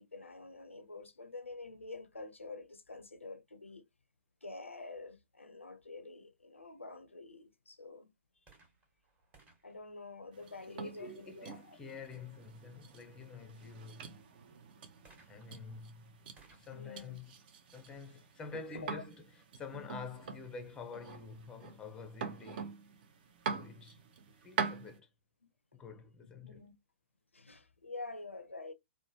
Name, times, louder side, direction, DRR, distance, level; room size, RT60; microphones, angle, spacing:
voice 1, 0.0-3.9 4.4-8.1 9.6-11.8 16.7-17.2 18.5-18.9 26.4-26.7 27.3-28.7, left 3 dB, 90° left, 0.4 m, -47 dB
sound 1, 8.4-11.0 15.0-18.7 19.5-19.6, right 3 dB, 20° right, 1.0 m, -66 dB
sound 2, 10.3-25.0, right 5 dB, 50° right, 0.6 m, -45 dB
voice 2, 10.7-14.2 15.3-16.2 16.5-17.3 17.7-22.8 23.5-25.1 25.7-26.6, left 4 dB, 10° left, 0.5 m, -48 dB
3.0 x 2.1 x 2.6 m
figure-of-eight pair, 115°, 7 cm